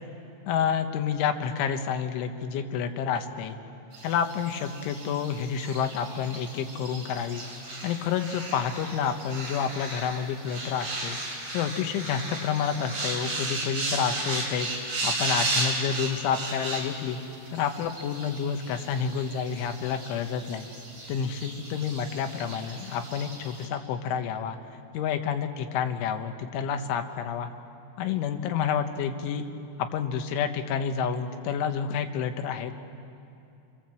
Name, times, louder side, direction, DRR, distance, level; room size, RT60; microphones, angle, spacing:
voice 1, 0.5-3.6 4.0-7.5 7.8-11.2 11.5-14.7 15.0-17.2 17.5-20.7 21.1-24.6 24.9-27.5 28.0-29.4 29.8-32.7, left 7 dB, 80° left, 6 dB, 3.7 m, -29 dB
sound 1, 3.9-23.7, right 2 dB, 35° right, 5.5 m, -35 dB
28.5 x 23.0 x 7.7 m, 2.7 s
omnidirectional pair, 5.5 m